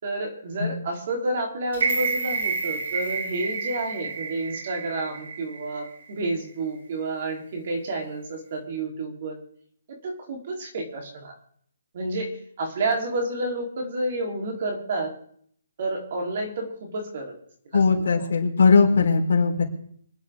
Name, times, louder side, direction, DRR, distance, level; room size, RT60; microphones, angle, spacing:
voice 1, 0.0-9.4 9.9-11.3 11.9-12.3 12.6-15.1 15.8-17.3 17.7-18.3, right 2 dB, 40° right, 1 dB, 3.6 m, -30 dB
sound 1, 1.7-5.9 6.3-6.4, right 4 dB, 55° right, 3.7 m, -29 dB
voice 2, 17.7-19.6, left 4 dB, 60° left, 0 dB, 3.9 m, -19 dB
26.5 x 10.5 x 3.7 m, 0.63 s
hypercardioid pair, 170°, 0 cm